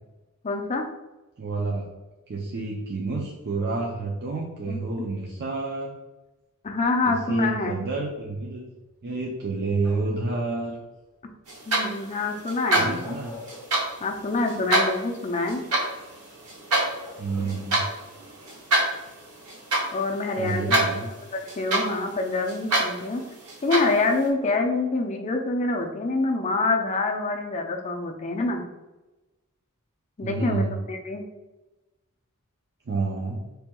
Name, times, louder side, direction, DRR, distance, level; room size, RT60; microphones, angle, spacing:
voice 1, 0.4-0.9 4.7-4.8 6.6-7.8 11.7-13.1 14.0-15.6 19.9-20.8 21.3-23.2 23.6-28.6 30.2-31.3, left 3 dB, 30° left, 3 dB, 0.4 m, -26 dB
voice 2, 1.4-1.8 2.3-5.9 7.1-8.6 9.0-10.8 12.8-13.3 17.2-17.9 20.4-21.1 30.2-30.8 32.9-33.4, right 3 dB, 50° right, -2 dB, 0.5 m, -29 dB
sound 1, 9.8-10.3 12.8-14.2 14.6-14.7 16.2-16.3 16.7-17.8 18.9-19.0 20.2-21.0 24.0-24.9, left 3 dB, 5° left, 1.1 m, -43 dB
sound 2, 11.5-24.3, right 1 dB, 80° right, 0.9 m, -28 dB
4.3 x 3.3 x 2.2 m, 1.1 s
head